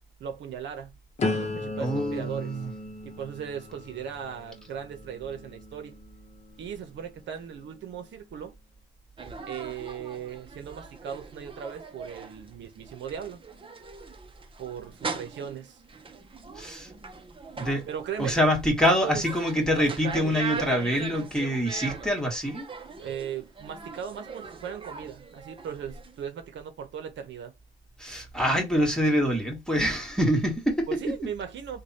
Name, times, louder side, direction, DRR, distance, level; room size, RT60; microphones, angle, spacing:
voice 1, 0.2-1.0 1.2-2.5 3.0-5.9 6.6-8.5 9.5-13.4 14.6-15.8 17.9-18.4 18.8-19.2 19.8-21.1 23.0-27.5 30.9-31.8, right 8 dB, 70° right, 0.8 m, -37 dB
sound 1, 1.2-7.1 7.6-8.0, left 2 dB, 35° left, 0.9 m, -36 dB
voice 2, 1.8-2.7 16.5-16.9 17.6-17.8 18.2-22.7 28.0-31.0, equal, 5° left, 1.4 m, -25 dB
sound 2, 9.2-26.3, right 4 dB, 25° right, 0.7 m, -41 dB
3.3 x 2.3 x 4.1 m
cardioid pair, 90°, 20 cm